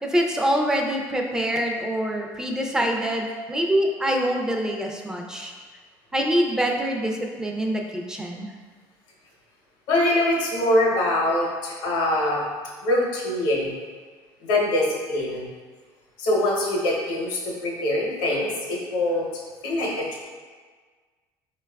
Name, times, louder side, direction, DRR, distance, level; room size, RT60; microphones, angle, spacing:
voice 1, 0.0-5.5 6.1-8.5, equal, 5° right, 1 dB, 0.4 m, -25 dB
voice 2, 9.9-12.5 12.8-13.8 14.4-15.5 16.2-19.3 19.6-20.2, left 1 dB, 85° left, -3 dB, 0.8 m, -23 dB
4.3 x 2.2 x 2.2 m, 1.5 s
supercardioid pair, 100°, 9 cm